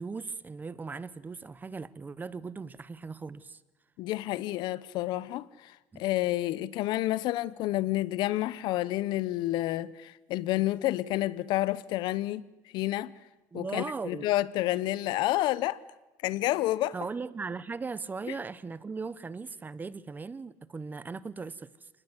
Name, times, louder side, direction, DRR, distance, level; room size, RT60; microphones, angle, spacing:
voice 1, 0.0-3.6 5.9-6.1 13.5-14.2 16.9-21.9, right 4 dB, 25° right, 1.1 m, -38 dB
voice 2, 4.0-12.4 12.7-13.1 13.5-15.8 16.2-16.9 18.3-18.4, left 16 dB, 70° left, 0.9 m, -29 dB
28.0 x 20.0 x 8.2 m
supercardioid pair, 95°, 8 cm